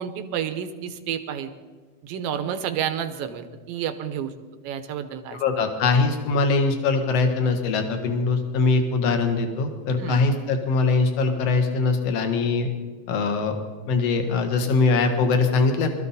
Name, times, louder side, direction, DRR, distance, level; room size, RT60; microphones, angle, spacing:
voice 1, 0.0-1.5 2.0-4.3 4.6-5.4 10.0-10.2, right 9 dB, 65° right, 9 dB, 1.8 m, -30 dB
voice 2, 5.3-12.7 13.1-13.5 13.9-15.9, left 4 dB, 60° left, 5 dB, 2.4 m, -22 dB
22.0 x 13.5 x 4.2 m, 1.4 s
omnidirectional pair, 3.3 m